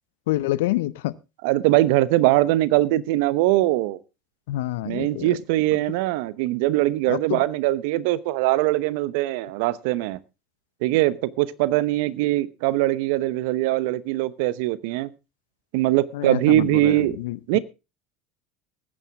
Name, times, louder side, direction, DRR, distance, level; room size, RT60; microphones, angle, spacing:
voice 1, 0.3-1.1 4.5-5.3 7.1-7.4 16.1-17.6, left 16 dB, 75° left, 0.7 m, -27 dB
voice 2, 1.4-4.0 4.8-10.2 10.8-15.1 15.7-17.2 17.5-17.6, right 16 dB, 70° right, 0.9 m, -22 dB
20.0 x 9.7 x 3.5 m
hypercardioid pair, 75°, 0 cm